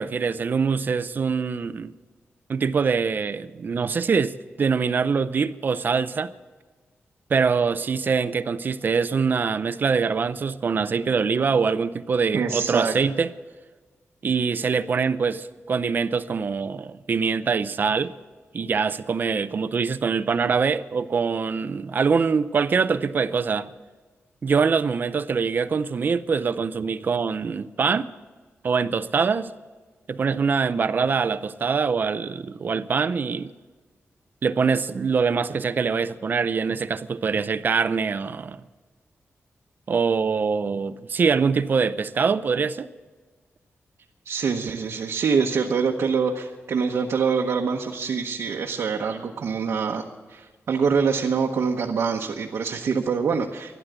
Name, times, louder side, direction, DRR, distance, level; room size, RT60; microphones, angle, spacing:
voice 1, 0.0-1.9 2.5-6.3 7.3-13.3 14.2-18.1 18.5-23.7 24.4-28.1 28.6-29.5 30.1-33.5 34.4-38.6 39.9-42.9, right 5 dB, 45° right, 0.5 m, -24 dB
voice 2, 12.3-12.9 44.2-50.0 50.3-53.8, right 5 dB, 70° right, 0.9 m, -25 dB
12.5 x 11.5 x 8.0 m
wide cardioid pair, 175°, 5 cm